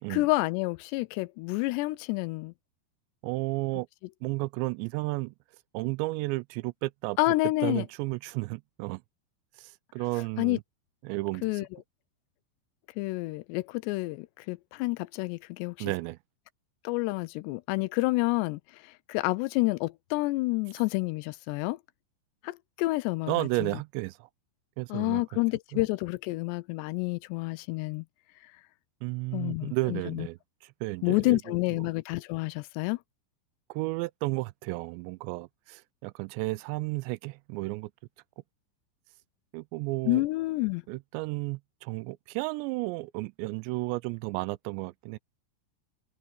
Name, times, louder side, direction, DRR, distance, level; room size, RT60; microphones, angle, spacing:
voice 1, 0.1-2.5 7.2-7.8 10.4-10.6 11.4-11.7 13.0-15.8 16.8-21.8 22.4-23.7 24.9-28.1 29.3-30.3 31.0-33.0 40.1-40.8, left 22 dB, 85° left, 2.7 m, -29 dB
voice 2, 3.2-3.9 4.2-5.3 5.7-7.2 7.6-9.0 9.6-10.6 11.0-11.7 15.8-16.2 23.3-24.3 24.8-25.2 25.7-25.8 29.0-31.9 33.7-37.9 39.5-40.2 40.9-45.2, right 23 dB, 85° right, 2.8 m, -33 dB
omnidirectional pair, 5.0 m